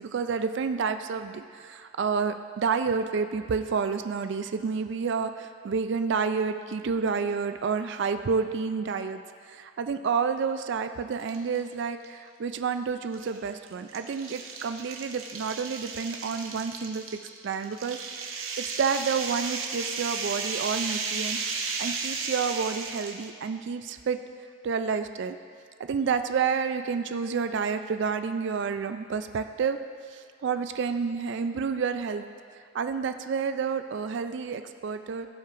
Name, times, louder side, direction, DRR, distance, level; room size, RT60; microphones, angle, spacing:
voice 1, 0.0-17.0 17.4-21.4 21.8-24.2 24.6-25.4 25.8-29.8 30.1-32.3 32.7-35.3, right 5 dB, 55° right, 9 dB, 0.3 m, -29 dB
sound 1, 11.2-11.6 12.0-12.1 13.1-23.3, right 4 dB, 75° right, 0.8 m, -34 dB
16.5 x 5.7 x 2.5 m, 2.2 s
head